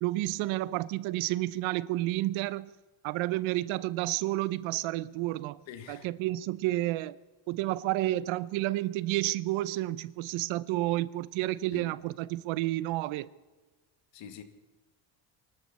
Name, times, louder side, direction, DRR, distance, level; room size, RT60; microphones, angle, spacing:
voice 1, 0.0-2.7 3.0-5.6 5.9-7.2 7.5-13.3, right 16 dB, 75° right, 0.8 m, -30 dB
voice 2, 5.7-6.1 11.7-11.9 14.1-14.4, left 9 dB, 65° left, 2.1 m, -45 dB
24.0 x 12.5 x 4.3 m
supercardioid pair, 90°, 48 cm